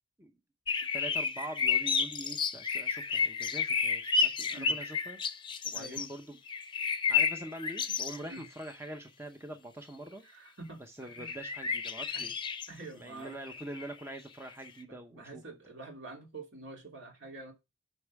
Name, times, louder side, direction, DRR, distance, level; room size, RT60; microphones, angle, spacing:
sound 1, 0.7-6.1 6.5-8.5 8.7-8.8 11.1-12.7 13.2-13.9 14.5-14.7, left 5 dB, 25° left, 0.7 m, -31 dB
voice 1, 0.8-5.2 5.6-6.4 7.1-10.2 10.9-12.3 12.9-15.4, right 1 dB, 15° right, 5 dB, 0.7 m, -44 dB
voice 2, 10.2-11.3 12.1-12.3 12.7-13.4 14.9-17.5, right 2 dB, 65° right, 2 dB, 2.8 m, -47 dB
8.5 x 5.4 x 4.7 m, 0.24 s
head